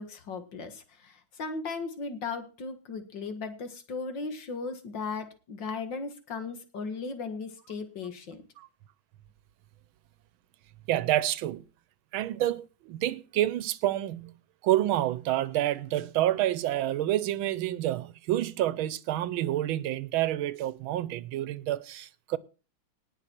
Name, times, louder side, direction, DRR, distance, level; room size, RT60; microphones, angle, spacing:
voice 1, 0.0-8.4, left 4 dB, 65° left, 2.3 m, -37 dB
voice 2, 10.9-11.6 12.1-14.3 14.6-22.4, right 13 dB, 85° right, 1.5 m, -28 dB
18.5 x 6.7 x 4.5 m
omnidirectional pair, 2.2 m